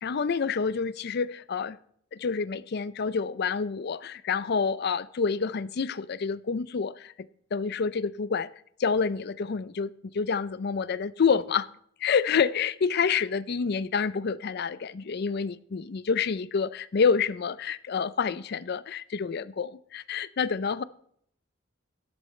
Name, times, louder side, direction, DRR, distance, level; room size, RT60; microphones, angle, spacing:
voice 1, 0.0-1.8 2.1-7.1 7.5-8.5 8.8-11.7 12.0-20.8, left 5 dB, 55° left, 0.5 m, -28 dB
13.5 x 11.0 x 3.2 m
head